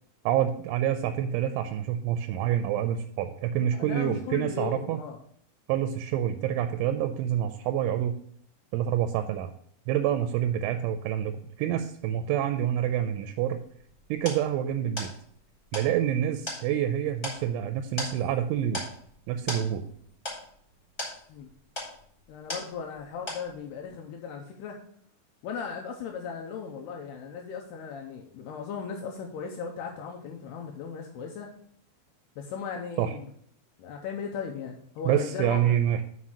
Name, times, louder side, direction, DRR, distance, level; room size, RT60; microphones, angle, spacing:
voice 1, 0.3-5.0 5.7-8.2 8.7-9.5 9.9-11.3 11.6-13.6 14.1-15.1 15.7-18.8 19.3-19.8 33.0-33.1 35.1-36.0, right 10 dB, 85° right, 7 dB, 3.0 m, -27 dB
voice 2, 3.7-5.2 21.3-21.5 22.3-24.8 25.4-31.5 32.4-33.3 33.8-35.7, left 6 dB, 85° left, 2 dB, 2.4 m, -37 dB
sound 1, 13.7-23.0 23.3-23.8, left 1 dB, 15° left, 1.4 m, -39 dB
6.1 x 5.8 x 6.2 m, 0.62 s
omnidirectional pair, 5.4 m